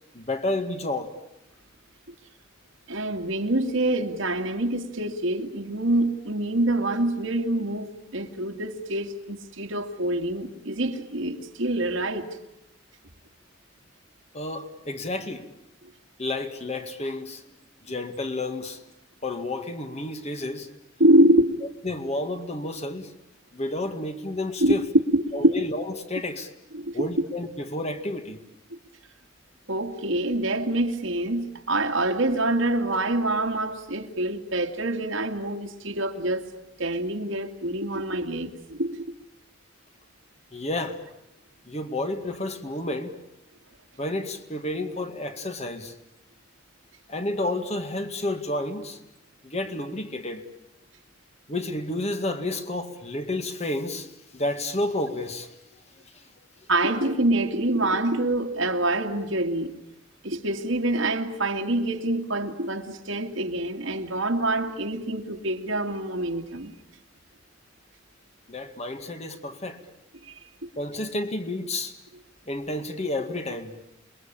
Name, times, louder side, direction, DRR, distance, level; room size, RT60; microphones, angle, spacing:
voice 1, 0.1-1.1 14.3-15.5 16.2-17.4 17.8-18.8 19.2-20.7 21.8-23.1 23.5-24.8 25.3-26.5 26.9-28.4 40.5-41.0 41.7-43.2 44.0-45.9 47.1-49.0 49.4-50.4 51.5-54.1 54.3-55.5 68.5-69.8 70.8-72.0 72.5-73.7, left 2 dB, 35° left, 2.0 m, -30 dB
voice 2, 2.9-12.3 21.0-21.5 24.6-24.7 25.1-25.5 26.7-27.1 29.7-36.4 36.8-39.0 56.7-59.7 60.2-66.7 70.3-70.4, right 1 dB, 80° right, 2.3 m, -25 dB
28.5 x 21.5 x 8.8 m
head